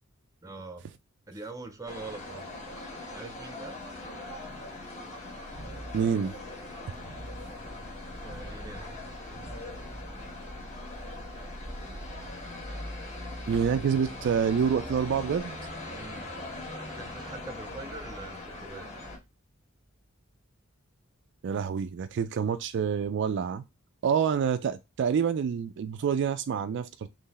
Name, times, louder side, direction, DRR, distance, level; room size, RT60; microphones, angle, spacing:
voice 1, 0.4-0.9 1.3-2.5 3.1-3.8 8.2-8.9 15.9-16.4 16.9-18.9, right 3 dB, 15° right, 0.7 m, -43 dB
sound 1, 1.9-19.2, left 1 dB, 35° left, 1.5 m, -41 dB
sound 2, 5.5-19.2 19.7-20.1 21.5-23.1, right 1 dB, 90° left, 1.3 m, -51 dB
voice 2, 5.9-6.3 13.5-15.6 21.4-23.6 24.0-27.1, right 7 dB, 55° right, 0.3 m, -27 dB
3.8 x 3.1 x 4.1 m
head